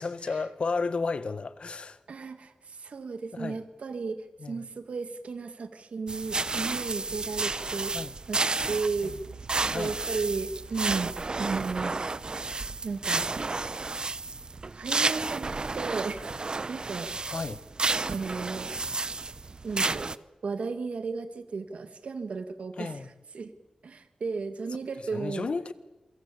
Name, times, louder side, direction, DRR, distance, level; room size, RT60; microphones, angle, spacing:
voice 1, 0.0-2.0 3.3-3.6 4.4-4.7 7.9-8.1 9.0-9.2 9.7-10.0 17.3-17.6 22.8-23.1 25.1-25.7, left 4 dB, 60° left, 1.7 m, -33 dB
voice 2, 2.1-7.9 8.3-12.0 12.8-13.6 14.7-16.3 16.7-17.4 18.1-18.7 19.6-20.1 20.4-23.5 23.8-25.5, right 4 dB, 80° right, 2.0 m, -34 dB
sound 1, 6.1-20.2, right 3 dB, 45° right, 0.9 m, -31 dB
28.5 x 23.0 x 8.5 m
wide cardioid pair, 90°, 2 cm